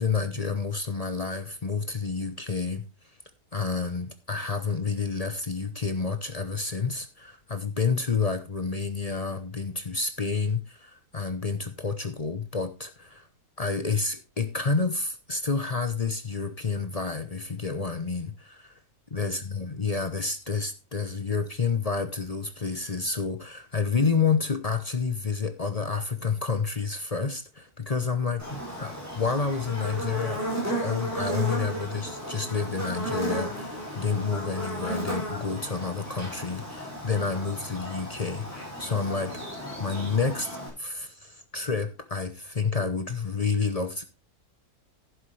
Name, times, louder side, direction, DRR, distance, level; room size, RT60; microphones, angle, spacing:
voice 1, 0.0-2.8 3.5-13.3 13.6-18.8 19.1-39.4 39.8-40.5 40.8-44.0, left 4 dB, 35° left, 9 dB, 0.7 m, -29 dB
Buzz, 28.4-40.7, equal, 10° right, 5.7 m, -34 dB
11.0 x 11.0 x 3.2 m, 0.27 s
omnidirectional pair, 1.6 m